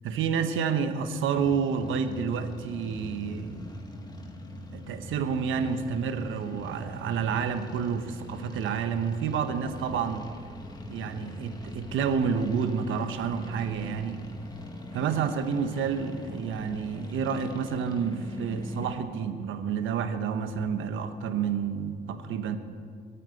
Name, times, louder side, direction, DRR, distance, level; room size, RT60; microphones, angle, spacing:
voice 1, 0.0-3.8 4.7-10.2 10.8-14.2 14.9-22.6, right 6 dB, 80° right, 9 dB, 1.2 m, -29 dB
sound 1, 1.3-19.0, left 1 dB, 20° left, 2.1 m, -43 dB
21.5 x 8.5 x 7.9 m, 2.1 s
cardioid pair, 90°, 20 cm